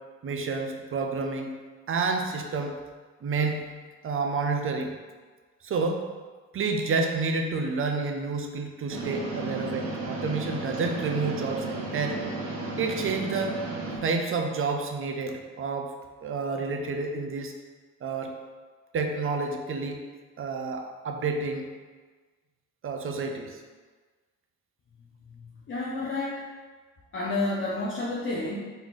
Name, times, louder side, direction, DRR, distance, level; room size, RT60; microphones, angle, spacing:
voice 1, 0.2-1.5 1.9-2.8 3.2-3.6 4.0-4.9 5.6-6.0 6.5-12.2 12.8-13.6 14.0-15.9 16.2-17.5 18.0-18.3 18.9-20.0 20.4-21.7 22.8-23.6, right 4 dB, 45° right, 4 dB, 0.6 m, -29 dB
sound 1, 8.9-14.0, right 2 dB, 70° right, 1.3 m, -34 dB
voice 2, 25.2-26.4 27.1-28.6, left 2 dB, 40° left, -5 dB, 0.8 m, -30 dB
4.0 x 3.0 x 4.0 m, 1.4 s
cardioid pair, 90°, 30 cm